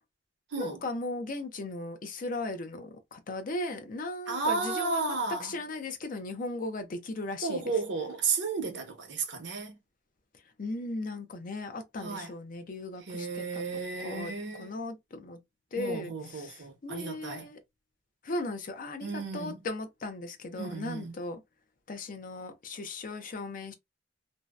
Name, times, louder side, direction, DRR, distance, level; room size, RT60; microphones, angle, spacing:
voice 1, 0.6-7.7 10.6-13.6 14.0-14.3 14.6-15.4 15.7-17.6 18.2-21.4 21.9-23.7, left 2 dB, 50° left, 0.5 m, -37 dB
voice 2, 4.3-5.6 7.4-9.8 12.0-12.3 13.1-14.7 15.8-17.5 19.0-19.6 20.6-21.1, right 4 dB, 70° right, 0.7 m, -33 dB
2.6 x 2.0 x 2.3 m
head